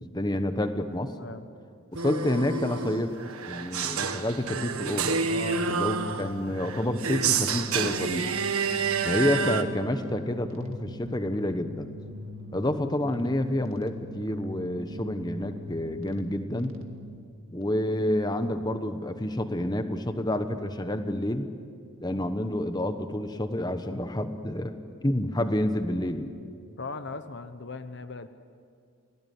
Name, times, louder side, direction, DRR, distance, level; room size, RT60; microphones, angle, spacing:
voice 1, 0.0-1.1 1.9-3.1 3.5-5.2 5.7-8.3 9.0-11.9 12.5-16.7 17.5-21.5 22.0-24.7 25.0-26.3, left 1 dB, 20° left, 8 dB, 1.1 m, -29 dB
sound 1, 2.0-9.6, right 5 dB, 85° right, 1.6 m, -29 dB
sound 2, 5.0-17.2, equal, 70° right, 2.1 m, -42 dB
voice 2, 5.3-5.7 26.8-28.3, left 3 dB, 50° left, 10 dB, 0.9 m, -38 dB
29.0 x 18.5 x 9.4 m, 2.3 s
head